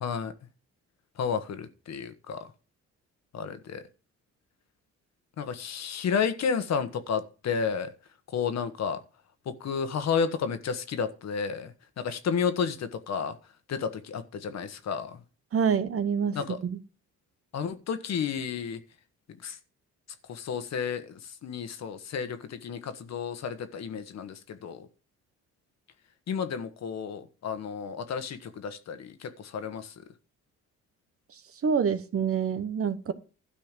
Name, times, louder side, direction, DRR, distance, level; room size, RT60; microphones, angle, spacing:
voice 1, 0.0-0.3 1.2-2.5 3.3-3.8 5.4-7.9 8.3-9.0 9.4-13.4 13.7-15.2 16.3-16.6 17.5-18.8 19.3-19.6 20.3-24.9 26.3-29.9, left 6 dB, 60° left, 1.4 m, -32 dB
voice 2, 15.5-16.4 16.6-16.8 31.6-33.1, right 6 dB, 50° right, 1.1 m, -26 dB
12.5 x 4.5 x 7.4 m
cardioid pair, 90°, 30 cm